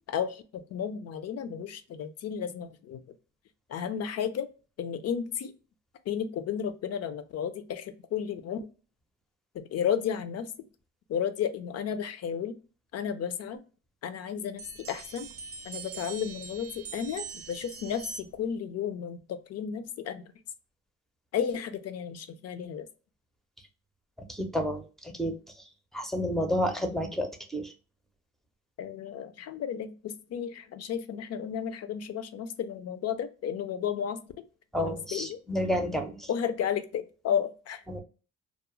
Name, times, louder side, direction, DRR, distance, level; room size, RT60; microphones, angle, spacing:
voice 1, 0.1-3.0 3.7-4.5 4.8-5.5 6.1-8.7 9.5-10.5 11.1-12.6 12.9-13.6 14.0-15.3 15.7-20.3 21.3-22.9 28.8-34.2 34.8-35.4 36.3-38.0, left 8 dB, 55° left, 11 dB, 0.4 m, -33 dB
sound 1, 14.6-18.5, right 7 dB, 50° right, 0.6 m, -43 dB
voice 2, 24.3-24.8 25.2-25.3 25.9-27.7 34.7-36.3 37.9-38.0, equal, ahead, 3 dB, 0.5 m, -30 dB
2.4 x 2.0 x 2.9 m, 0.36 s
cardioid pair, 90°, 30 cm